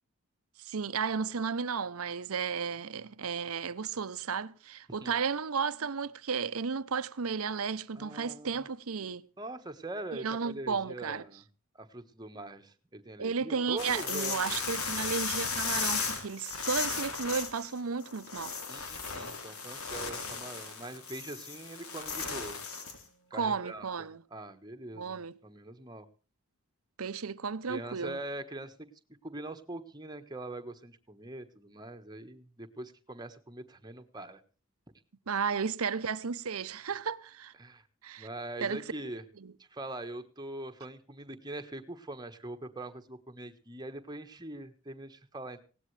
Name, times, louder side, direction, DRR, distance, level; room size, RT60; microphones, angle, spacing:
voice 1, 0.6-9.2 10.1-11.2 13.2-18.5 23.3-24.2 24.9-25.3 27.0-28.2 35.3-37.5 38.0-38.3 38.6-38.8 39.4-39.5, right 5 dB, 80° right, 0.8 m, -33 dB
voice 2, 8.0-8.6 9.4-11.4 11.7-14.6 18.7-22.6 23.3-26.1 27.7-28.9 29.2-34.4 37.6-37.9 38.2-39.2 39.6-45.6, right 2 dB, 20° right, 1.3 m, -43 dB
sound 1, 13.8-23.0, left 5 dB, 80° left, 3.1 m, -36 dB
19.0 x 17.0 x 3.3 m
head